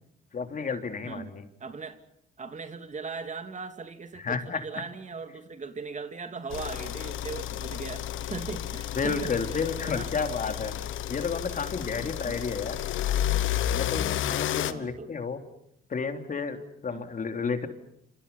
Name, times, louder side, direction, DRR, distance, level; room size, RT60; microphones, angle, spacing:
voice 1, 0.3-1.5 4.2-4.6 8.9-10.8 11.1-12.8 13.7-15.4 15.9-17.7, left 5 dB, 40° left, 7 dB, 3.4 m, -31 dB
voice 2, 1.6-2.0 2.4-10.1 11.8-12.5 14.7-15.1 16.9-17.0, right 4 dB, 35° right, 8 dB, 2.9 m, -39 dB
sound 1, 6.5-14.7, left 11 dB, 80° left, 1.4 m, -31 dB
30.0 x 28.0 x 5.7 m, 0.73 s
cardioid pair, 90°, 20 cm